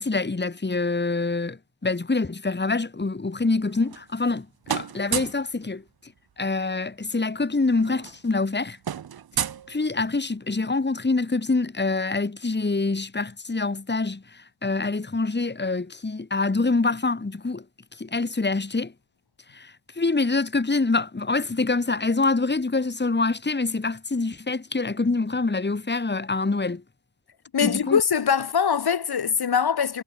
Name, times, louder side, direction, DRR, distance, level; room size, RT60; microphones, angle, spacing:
voice 1, 0.0-5.8 6.4-8.8 9.7-17.6 18.0-18.9 19.5-26.8 27.6-28.0, left 3 dB, 25° left, 2.3 m, -25 dB
sound 1, 3.6-4.4 4.6-5.5 6.8-6.9 7.2-7.4 7.7-10.3, right 8 dB, 60° right, 1.3 m, -32 dB
voice 2, 27.5-30.0, left 7 dB, 60° left, 2.4 m, -22 dB
supercardioid pair, 40°, 43 cm